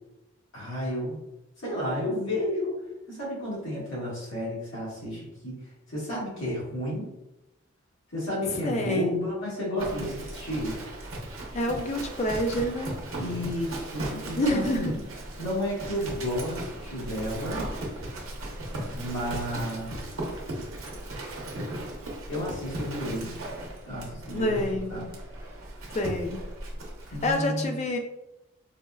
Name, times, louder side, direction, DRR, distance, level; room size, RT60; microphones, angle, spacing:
voice 1, 0.5-1.2 1.6-2.8 3.1-5.6 5.9-7.1 8.1-10.7 13.2-14.9 15.4-17.7 18.9-20.1 22.3-23.4 23.8-25.1 27.1-27.8, equal, 70° left, -7 dB, 1.4 m, -32 dB
voice 2, 8.5-9.1 11.5-12.9 14.3-14.9 24.3-24.9 25.9-26.4 27.2-28.0, left 1 dB, 30° left, 3 dB, 0.3 m, -27 dB
Livestock farm animals working animals, 9.8-27.4, right 1 dB, 80° right, 0.7 m, -37 dB
4.1 x 2.2 x 2.2 m, 0.93 s
head